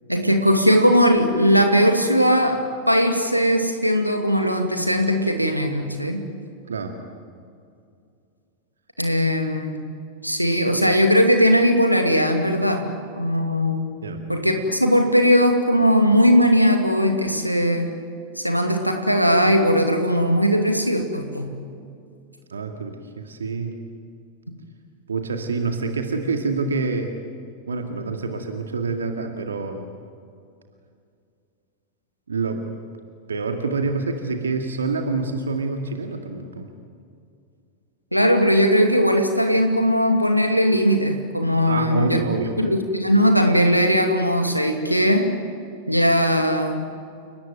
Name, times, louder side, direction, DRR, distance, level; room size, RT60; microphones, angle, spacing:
voice 1, 0.1-6.2 9.0-9.8 10.2-12.9 13.2-13.9 14.3-17.9 18.4-21.5 38.1-42.2 42.6-45.3 45.9-46.9, equal, 90° right, 5 dB, 2.4 m, -19 dB
voice 2, 6.7-7.0 14.0-14.3 22.5-23.8 25.1-27.1 27.7-29.9 32.3-32.6 33.3-36.7 41.7-42.5, right 4 dB, 70° right, 5 dB, 2.1 m, -26 dB
30.0 x 19.0 x 9.3 m, 2.4 s
figure-of-eight pair, 90°, 0 cm